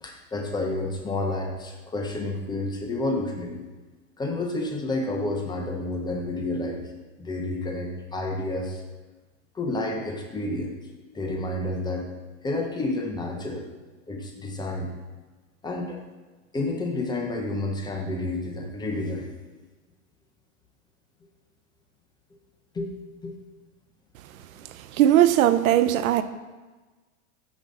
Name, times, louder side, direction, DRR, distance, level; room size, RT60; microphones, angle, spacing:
voice 1, 0.0-3.6 4.2-6.9 7.2-8.8 9.5-10.7 11.1-12.1 12.4-13.7 14.1-15.0 15.6-16.0 16.5-19.3 22.7-22.9 23.2-23.4, left 2 dB, 10° left, 1 dB, 0.6 m, -30 dB
voice 2, 25.0-26.2, right 12 dB, 75° right, 12 dB, 0.5 m, -18 dB
6.4 x 5.1 x 3.8 m, 1.3 s
hypercardioid pair, 130°, 41 cm